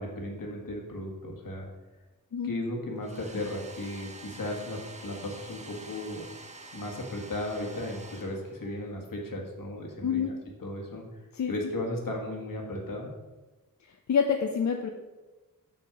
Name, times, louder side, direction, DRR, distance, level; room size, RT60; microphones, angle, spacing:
voice 1, 0.0-1.7 2.4-6.3 6.7-11.1 11.5-13.1, left 1 dB, 75° left, 0 dB, 1.8 m, -35 dB
Domestic sounds home sounds, 3.0-8.8, right 2 dB, 20° right, 0.8 m, -47 dB
voice 2, 10.0-10.3 11.3-11.5 14.1-14.9, left 7 dB, 55° left, 4 dB, 0.6 m, -26 dB
6.5 x 6.0 x 5.0 m, 1.2 s
wide cardioid pair, 125°, 33 cm